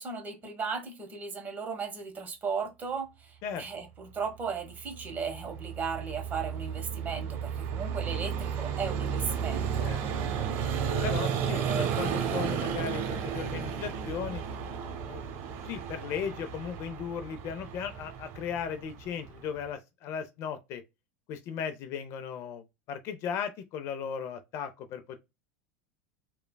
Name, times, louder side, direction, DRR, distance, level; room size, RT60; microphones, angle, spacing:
voice 1, 0.0-3.3 3.6-9.9 11.5-11.9, right 5 dB, 30° right, 1.1 m, -36 dB
Vehicle, 5.0-19.7, right 7 dB, 55° right, 0.8 m, -33 dB
voice 2, 9.8-10.2 11.0-14.4 15.1-15.2 15.6-20.8 21.3-22.6 22.9-25.2, left 7 dB, 50° left, 0.5 m, -36 dB
3.2 x 2.2 x 2.2 m
hypercardioid pair, 100°, 6 cm